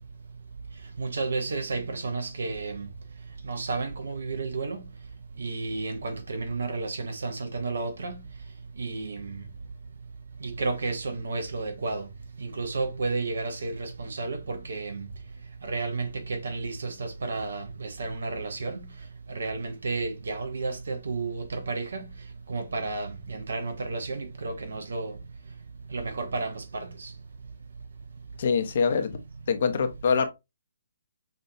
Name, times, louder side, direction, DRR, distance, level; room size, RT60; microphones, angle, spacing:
voice 1, 1.0-2.8 3.5-4.8 5.4-8.2 8.8-9.2 10.6-12.0 12.6-14.9 15.7-18.8 19.4-22.0 22.5-25.1 25.9-26.6, right 3 dB, 60° right, 0.9 m, -31 dB
voice 2, 28.4-29.2 29.5-30.3, left 5 dB, 45° left, 0.7 m, -24 dB
5.6 x 2.7 x 2.7 m
figure-of-eight pair, 135°, 0 cm